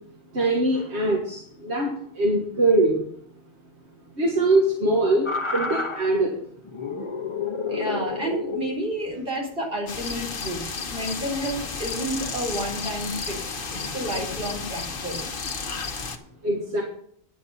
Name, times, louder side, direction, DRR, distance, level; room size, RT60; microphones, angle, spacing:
voice 1, 0.3-3.1 4.2-6.4 16.4-16.8, right 2 dB, 80° right, -1 dB, 1.8 m, -22 dB
sound 1, 5.3-6.1 6.7-8.8 10.0-10.3, left 4 dB, 30° left, 1.2 m, -30 dB
voice 2, 7.7-13.4 13.7-15.3, right 1 dB, 55° right, -2 dB, 4.0 m, -30 dB
sound 2, 9.9-16.2, left 4 dB, 55° left, 1.2 m, -32 dB
9.9 x 8.6 x 5.4 m, 0.63 s
omnidirectional pair, 1.1 m